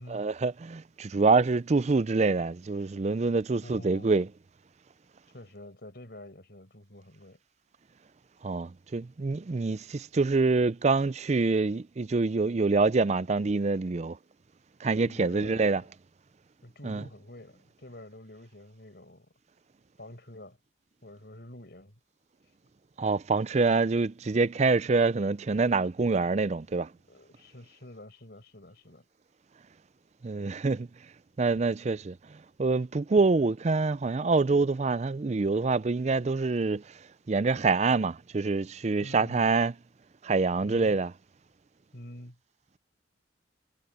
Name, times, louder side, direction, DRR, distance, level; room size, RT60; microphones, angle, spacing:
voice 1, 0.1-4.3 8.4-14.2 14.8-15.8 16.8-17.0 23.0-26.9 30.2-30.9 31.4-32.2 32.6-36.8 37.3-39.7 40.2-41.1, right 3 dB, 35° right, 0.4 m, -26 dB
voice 2, 3.6-4.2 5.3-7.4 15.0-15.9 16.6-19.3 20.0-20.6 21.0-21.9 26.9-29.1 39.0-39.5 40.6-41.0 41.9-42.4, left 1 dB, 55° left, 5.2 m, -47 dB
head